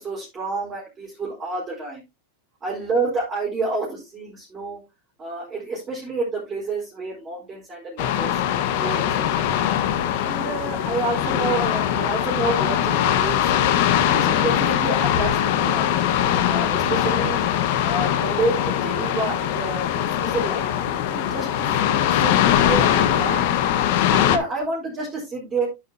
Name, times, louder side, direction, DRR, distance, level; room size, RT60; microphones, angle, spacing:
voice 1, 0.0-2.0 2.6-4.8 5.2-8.4 8.8-9.4 10.3-13.5 14.0-15.9 16.5-17.4 17.8-20.7 20.9-23.5 24.1-25.7, right 3 dB, 20° right, -6 dB, 4.3 m, -29 dB
sound 1, 8.0-24.4, left 10 dB, 55° left, 1.4 m, -21 dB
10.5 x 7.6 x 2.8 m, 0.23 s
supercardioid pair, 155°, 0 cm